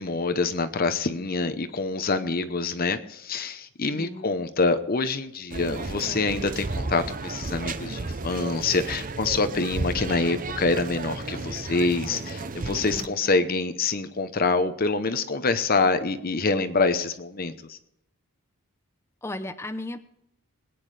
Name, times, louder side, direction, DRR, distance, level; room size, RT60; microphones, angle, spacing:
voice 1, 0.0-17.8, left 3 dB, 40° left, 9 dB, 0.9 m, -26 dB
voice 2, 3.9-4.3 12.7-13.1 19.2-20.0, left 1 dB, 10° left, 9 dB, 0.7 m, -36 dB
sound 1, 5.5-13.1, right 3 dB, 35° right, 0.6 m, -33 dB
21.5 x 9.6 x 3.3 m, 0.79 s
head